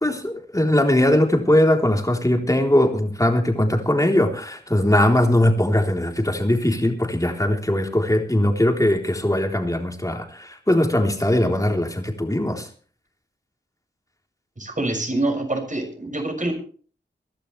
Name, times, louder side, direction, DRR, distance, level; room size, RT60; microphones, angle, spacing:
voice 1, 0.0-12.7, left 1 dB, 15° left, 2 dB, 3.7 m, -20 dB
voice 2, 14.6-16.5, right 2 dB, 40° right, 4 dB, 6.4 m, -25 dB
23.5 x 12.0 x 3.3 m, 0.43 s
cardioid pair, 45°, 19 cm